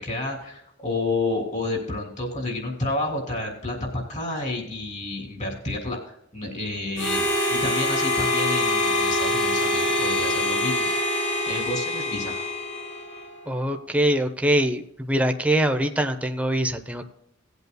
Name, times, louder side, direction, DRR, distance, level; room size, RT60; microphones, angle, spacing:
voice 1, 0.0-10.9 11.2-12.4, left 2 dB, 35° left, 1 dB, 3.1 m, -30 dB
Harmonica, 7.0-13.3, left 1 dB, 65° left, 2.6 m, -24 dB
voice 2, 13.5-17.1, right 1 dB, 5° right, 6 dB, 0.8 m, -23 dB
18.5 x 8.1 x 2.3 m, 0.79 s
head